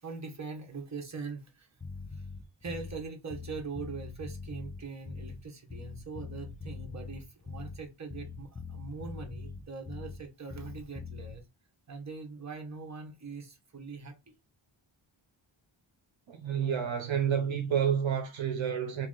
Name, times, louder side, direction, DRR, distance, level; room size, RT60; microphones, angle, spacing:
voice 1, 0.0-1.7 2.1-2.2 2.6-11.4 11.9-14.2, right 4 dB, 35° right, 1.1 m, -42 dB
Bass guitar, 1.8-3.0 3.3-5.4 5.7-10.2 10.5-11.4, left 4 dB, 15° left, 0.7 m, -42 dB
voice 2, 16.3-19.1, right 8 dB, 70° right, 0.8 m, -29 dB
3.1 x 2.9 x 3.7 m
wide cardioid pair, 95°, 48 cm